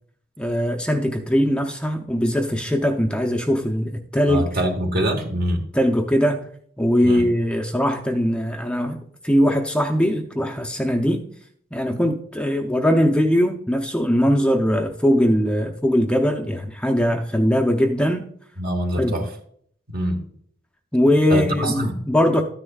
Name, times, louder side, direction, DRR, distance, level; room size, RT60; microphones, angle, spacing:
voice 1, 0.4-4.5 5.7-6.4 6.8-11.2 11.7-18.3 19.0-19.2 20.9-22.4, equal, 5° left, 3 dB, 0.6 m, -20 dB
voice 2, 4.3-5.6 7.0-7.2 18.6-19.3 19.9-20.2 21.3-22.0, right 1 dB, 50° right, 4 dB, 1.5 m, -24 dB
13.0 x 9.9 x 2.4 m, 0.62 s
head